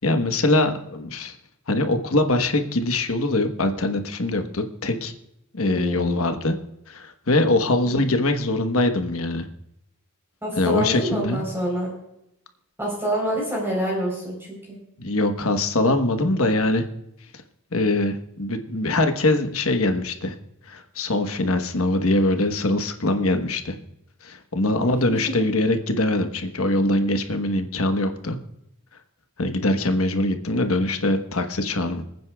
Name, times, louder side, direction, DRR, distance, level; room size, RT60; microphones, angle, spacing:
voice 1, 0.0-1.3 1.7-5.1 5.5-6.6 6.9-9.5 10.6-11.5 15.0-16.8 17.7-20.4 20.7-23.8 24.2-28.4 29.4-32.0, left 2 dB, 70° left, 6 dB, 1.2 m, -23 dB
voice 2, 5.6-6.2 7.8-8.0 10.4-11.9 12.8-14.8 24.8-24.9, equal, 10° right, -2 dB, 3.9 m, -27 dB
26.0 x 9.4 x 2.3 m, 0.81 s
head